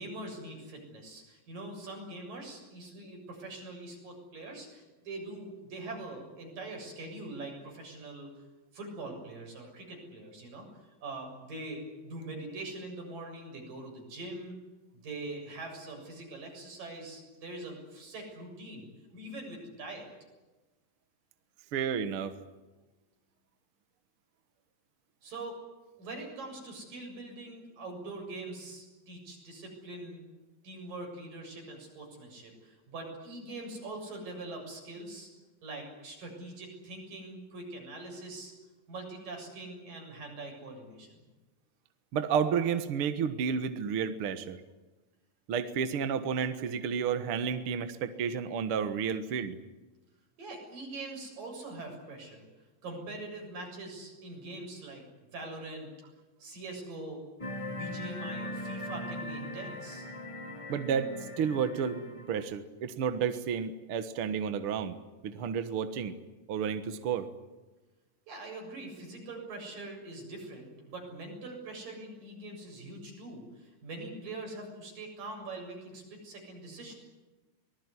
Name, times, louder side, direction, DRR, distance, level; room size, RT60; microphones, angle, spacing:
voice 1, 0.0-8.3 8.7-10.7 11.0-14.6 15.0-20.1 25.2-25.6 26.0-30.2 30.6-35.3 35.6-38.5 38.9-41.2 50.4-52.5 52.8-55.0 55.3-55.9 56.4-57.2 57.7-60.1 68.3-77.0, right 2 dB, 75° right, 2 dB, 8.7 m, -43 dB
voice 2, 21.7-22.3 42.1-44.6 45.5-49.6 60.7-61.1 61.4-62.0 62.3-65.0 65.2-66.1 66.5-67.3, right 7 dB, 55° right, 9 dB, 1.7 m, -31 dB
sound 1, 57.4-62.5, left 1 dB, 20° left, 0.9 m, -40 dB
24.5 x 20.0 x 9.8 m, 1.1 s
omnidirectional pair, 3.9 m